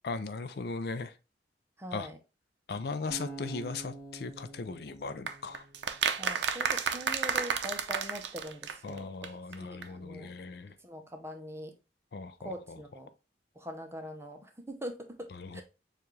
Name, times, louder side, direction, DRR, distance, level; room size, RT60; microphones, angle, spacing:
voice 1, 0.0-1.2 1.9-2.1 2.7-5.6 8.8-10.7 12.1-12.8 15.3-15.6, left 4 dB, 60° left, 0.4 m, -38 dB
voice 2, 1.8-2.2 6.2-9.3 9.6-10.3 10.8-11.7 12.4-13.1 13.5-15.6, equal, 15° right, 0.7 m, -42 dB
sound 1, 3.1-6.3, right 3 dB, 15° left, 1.6 m, -46 dB
sound 2, 5.3-9.0 9.2-9.3 9.5-9.6 9.8-9.9, right 6 dB, 75° right, 0.5 m, -31 dB
7.0 x 2.4 x 3.1 m
head